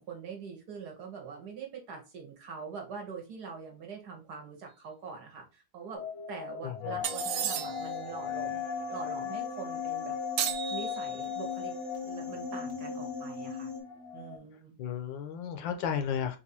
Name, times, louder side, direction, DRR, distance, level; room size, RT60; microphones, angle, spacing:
voice 1, 0.0-8.6 8.9-10.1 10.7-11.7 12.0-13.7 14.1-14.8, right 5 dB, 60° right, 1 dB, 1.4 m, -44 dB
sound 1, 5.9-14.4, left 7 dB, 55° left, 0.9 m, -38 dB
voice 2, 6.6-7.0 14.8-16.4, left 8 dB, 75° left, 6 dB, 1.3 m, -33 dB
sound 2, 7.0-13.8, left 4 dB, 45° right, 1.5 m, -41 dB
sound 3, 7.0-8.0 10.4-11.5, right 10 dB, 90° right, 1.4 m, -34 dB
4.1 x 2.6 x 4.0 m, 0.31 s
omnidirectional pair, 2.2 m